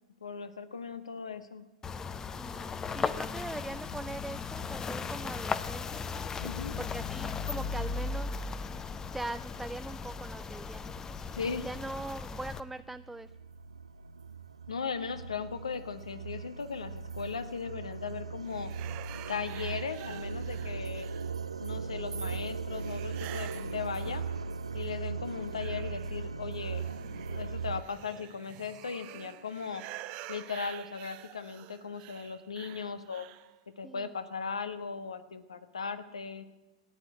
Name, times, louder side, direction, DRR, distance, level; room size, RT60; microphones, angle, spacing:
voice 1, 0.2-1.6 6.4-6.7 11.3-11.7 14.7-18.7 19.3-21.1 21.6-24.2 24.7-26.8 27.3-29.8 30.3-33.2 33.8-36.4, left 5 dB, 75° left, 11 dB, 1.3 m, -38 dB
sound 1, 1.8-12.6, left 5 dB, 20° left, 0.8 m, -37 dB
voice 2, 2.4-2.7 2.9-6.0 6.8-8.4 9.1-11.0 11.6-13.3 24.1-24.2 33.8-34.1, right 2 dB, 5° right, 10 dB, 0.4 m, -41 dB
sound 2, 10.9-11.0 11.5-27.8, right 5 dB, 80° right, 0.5 m, -39 dB
sound 3, 18.5-21.6 22.7-24.7 25.1-33.6, right 15 dB, 40° right, 0.9 m, -48 dB
14.0 x 10.0 x 9.5 m, 1.1 s
figure-of-eight pair, 95°, 3 cm